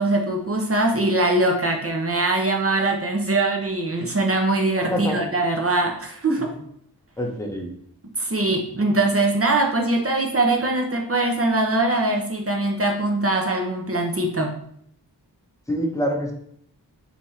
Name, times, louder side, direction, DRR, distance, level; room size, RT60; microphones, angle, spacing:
voice 1, 0.0-6.5 8.2-14.5, right 2 dB, 30° right, 1 dB, 0.9 m, -22 dB
voice 2, 7.2-7.7 15.7-16.3, equal, 5° left, 1 dB, 1.0 m, -26 dB
3.6 x 3.1 x 4.1 m, 0.67 s
cardioid pair, 45°, 42 cm